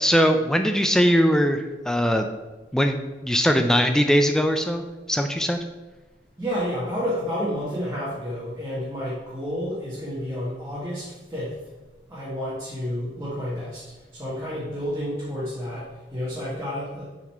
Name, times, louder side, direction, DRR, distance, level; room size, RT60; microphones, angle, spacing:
voice 1, 0.0-2.3 2.7-5.6, equal, 5° left, 6 dB, 0.3 m, -21 dB
voice 2, 6.4-11.6 12.1-13.8 14.1-17.0, equal, 15° right, -8 dB, 1.5 m, -30 dB
7.2 x 4.1 x 4.5 m, 1.2 s
head